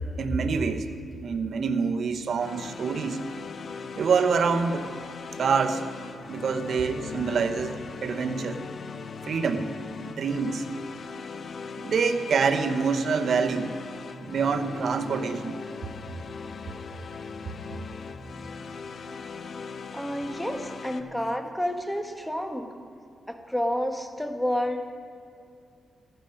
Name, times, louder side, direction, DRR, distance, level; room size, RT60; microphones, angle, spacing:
voice 1, 0.2-0.9 1.2-3.2 4.0-4.8 5.4-5.9 6.3-8.6 9.2-9.7 10.0-10.6 11.8-13.7 14.2-15.6, right 5 dB, 65° right, 7 dB, 0.9 m, -26 dB
sound 1, 2.4-21.0, left 5 dB, 55° left, 0.7 m, -39 dB
voice 2, 19.9-22.7 23.3-24.9, equal, 5° left, 5 dB, 1.4 m, -30 dB
15.0 x 11.5 x 5.2 m, 2.5 s
cardioid pair, 80°, 0 cm